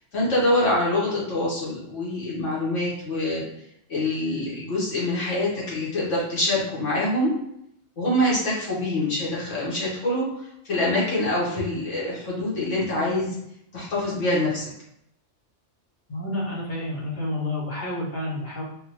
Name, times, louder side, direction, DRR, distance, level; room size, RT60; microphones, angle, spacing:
voice 1, 0.1-3.4 3.9-7.3 8.0-13.3 13.7-14.7, left 1 dB, 85° left, -6 dB, 1.6 m, -25 dB
voice 2, 16.1-18.6, left 1 dB, 45° left, -5 dB, 1.0 m, -29 dB
3.6 x 2.4 x 2.9 m, 0.76 s
omnidirectional pair, 1.2 m